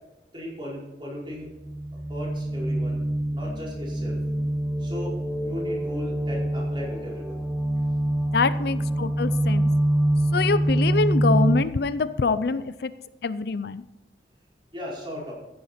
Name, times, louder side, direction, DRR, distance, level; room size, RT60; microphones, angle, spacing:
voice 1, 0.3-1.5 2.1-3.0 3.3-4.2 4.8-7.4 14.7-15.3, left 1 dB, 30° right, -4 dB, 4.9 m, -36 dB
sound 1, 1.6-11.6, right 1 dB, ahead, 0.8 m, -25 dB
voice 2, 8.3-9.7 10.3-12.9 13.2-13.8, left 4 dB, 60° left, 14 dB, 0.5 m, -25 dB
14.5 x 10.5 x 4.4 m, 1.0 s
head